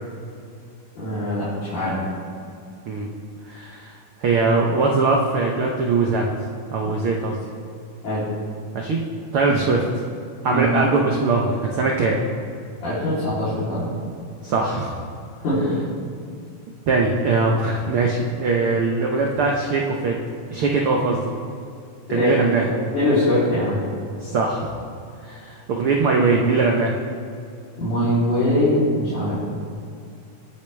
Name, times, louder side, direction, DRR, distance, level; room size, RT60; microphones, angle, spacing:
voice 1, 1.0-1.9 8.0-8.2 10.5-10.7 12.8-13.9 15.4-15.7 22.1-22.3 22.6-23.8 27.8-29.4, left 1 dB, 65° left, -13 dB, 4.8 m, -22 dB
voice 2, 3.5-3.9 4.2-6.3 6.7-7.4 8.7-9.0 9.3-9.8 10.4-12.2 14.4-15.0 16.9-20.1 20.5-21.2 22.1-22.7 24.2-24.7 25.2-27.0, right 3 dB, 75° right, 0 dB, 1.2 m, -21 dB
23.0 x 8.6 x 3.4 m, 2.4 s
omnidirectional pair, 3.8 m